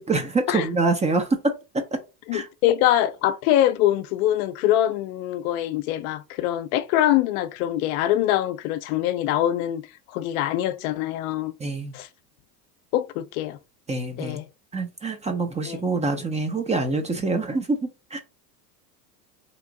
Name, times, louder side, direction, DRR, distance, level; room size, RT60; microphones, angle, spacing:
voice 1, 0.0-2.0 2.3-2.5 11.6-11.9 13.9-14.4 14.7-18.2, right 3 dB, 15° right, 0.4 m, -25 dB
voice 2, 2.3-9.8 10.1-11.5 11.9-12.1 12.9-13.6 14.2-14.5 15.7-15.8, left 13 dB, 65° left, 0.5 m, -23 dB
3.0 x 2.5 x 3.6 m
hypercardioid pair, 90°, 48 cm